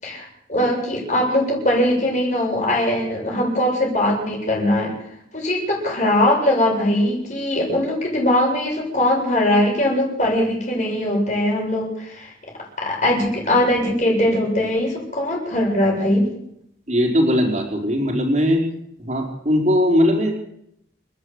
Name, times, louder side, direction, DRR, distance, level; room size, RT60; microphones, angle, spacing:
voice 1, 0.0-4.9 5.3-12.3 12.8-16.3, left 1 dB, 40° left, -1 dB, 7.6 m, -21 dB
voice 2, 16.9-18.6 19.0-20.3, equal, 40° right, 1 dB, 4.7 m, -19 dB
29.0 x 12.0 x 8.3 m, 0.76 s
head